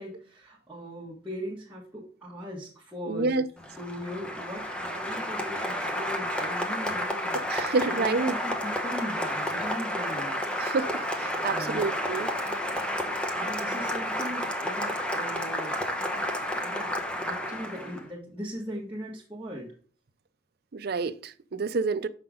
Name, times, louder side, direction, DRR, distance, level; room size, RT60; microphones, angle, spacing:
voice 1, 0.0-3.3 3.8-7.4 7.8-10.4 11.4-11.8 13.3-15.8 16.6-16.9 17.2-19.7, equal, 10° right, 1.8 m, -39 dB
voice 2, 3.1-3.4 7.3-8.3 10.6-12.3 20.7-22.1, right 4 dB, 55° right, 0.6 m, -28 dB
Applause, 3.6-18.0, equal, 5° left, 0.9 m, -31 dB
6.7 x 5.8 x 3.7 m
head